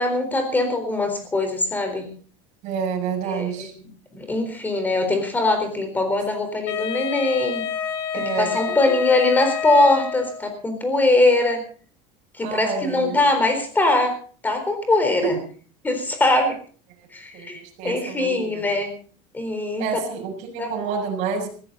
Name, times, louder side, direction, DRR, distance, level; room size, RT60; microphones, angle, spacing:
voice 1, 0.0-2.1 3.3-3.7 4.1-7.7 8.1-11.6 12.3-14.2 14.4-15.4 15.8-16.6 17.1-18.9 19.3-19.9 20.6-20.7, left 2 dB, 10° left, 6 dB, 4.0 m, -22 dB
voice 2, 2.6-3.7 8.1-8.7 12.4-13.2 15.2-15.3 17.0-17.1 17.3-18.8 19.8-21.5, right 6 dB, 50° right, 0 dB, 6.2 m, -29 dB
Wind instrument woodwind instrument, 6.7-10.5, left 8 dB, 85° left, 3.3 m, -28 dB
19.5 x 15.0 x 4.0 m, 0.41 s
cardioid pair, 160°, 16 cm